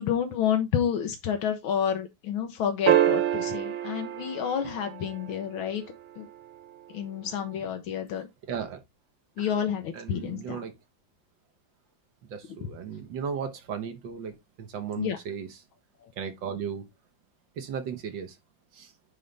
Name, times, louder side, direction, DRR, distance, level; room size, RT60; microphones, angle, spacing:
voice 1, 0.0-5.8 6.2-6.3 6.9-8.2 9.4-10.6 15.0-15.2, left 8 dB, 85° left, 1.7 m, -29 dB
sound 1, 2.9-5.4 7.6-7.7, right 11 dB, 90° right, 1.5 m, -26 dB
voice 2, 8.5-8.8 9.4-9.5 9.9-10.7 12.2-15.6 16.2-16.9 17.6-18.4 18.7-18.9, right 7 dB, 70° right, 1.8 m, -36 dB
9.1 x 3.3 x 4.0 m
omnidirectional pair, 2.2 m